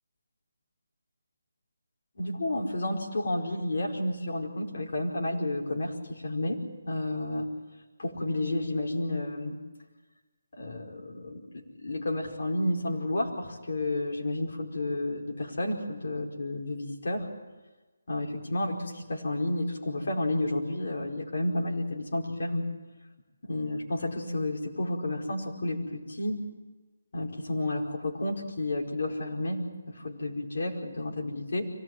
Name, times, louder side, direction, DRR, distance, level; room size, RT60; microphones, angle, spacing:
voice 1, 2.2-7.5 8.0-9.6 10.5-17.3 18.1-22.6 23.4-26.4 27.1-31.7, left 1 dB, 55° left, 0 dB, 4.9 m, -31 dB
24.5 x 18.5 x 9.3 m, 1.2 s
hypercardioid pair, 170°, 0 cm